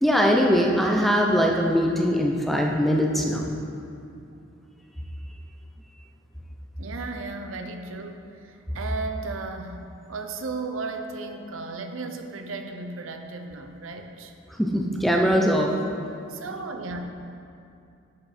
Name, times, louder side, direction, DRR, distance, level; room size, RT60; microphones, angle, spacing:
voice 1, 0.0-3.5 14.6-15.7, equal, ahead, 0 dB, 0.6 m, -21 dB
voice 2, 6.8-14.3 16.3-17.0, right 3 dB, 80° right, 5 dB, 0.7 m, -35 dB
10.5 x 5.6 x 4.3 m, 2.5 s
head